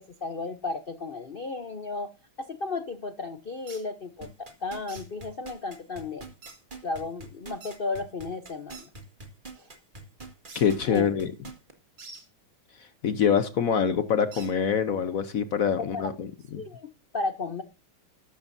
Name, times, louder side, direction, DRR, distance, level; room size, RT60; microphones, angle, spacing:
voice 1, 0.0-2.1 2.5-6.3 6.8-8.9 9.6-9.7 10.9-11.1 15.9-16.1 16.6-17.6, left 3 dB, 85° left, 0.4 m, -34 dB
sound 1, 3.7-3.8 4.9-5.1 6.4-6.6 7.6-7.8 8.7-8.9 10.5-10.7 12.0-12.2 14.3-14.5, right 4 dB, 85° right, 3.9 m, -45 dB
sound 2, 4.2-11.7 12.2-12.3, right 3 dB, 25° right, 1.7 m, -43 dB
voice 2, 10.5-11.3 13.0-16.6, left 7 dB, 60° left, 0.9 m, -25 dB
13.0 x 12.5 x 2.7 m
omnidirectional pair, 2.4 m